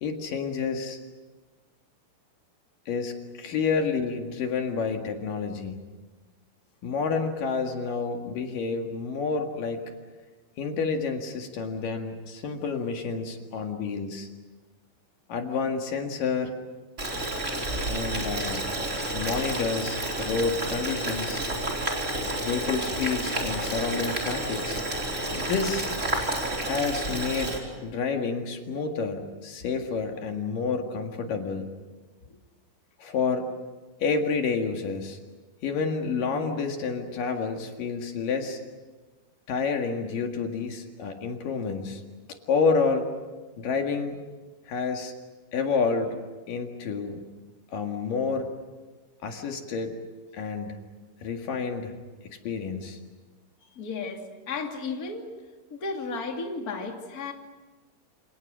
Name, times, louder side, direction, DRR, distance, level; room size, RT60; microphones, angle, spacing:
voice 1, 0.0-1.0 2.9-5.8 6.8-9.8 10.6-14.3 15.3-16.5 17.9-18.6 19.1-21.4 22.4-24.8 25.3-25.9 26.6-27.6 27.8-31.7 33.0-33.5 34.0-35.2 35.6-38.6 39.5-42.0 42.5-43.1 43.6-44.2 44.7-45.1 45.5-46.2 46.5-47.2 47.7-48.5 49.2-50.0 50.3-50.8 51.2-51.9 52.5-53.0, left 5 dB, 65° left, 4 dB, 3.5 m, -29 dB
Boiling, 17.0-27.6, right 1 dB, 20° right, 4.2 m, -30 dB
voice 2, 53.8-55.3 55.7-57.3, left 4 dB, 25° left, 2 dB, 2.6 m, -34 dB
28.5 x 28.0 x 6.3 m, 1.3 s
omnidirectional pair, 4.3 m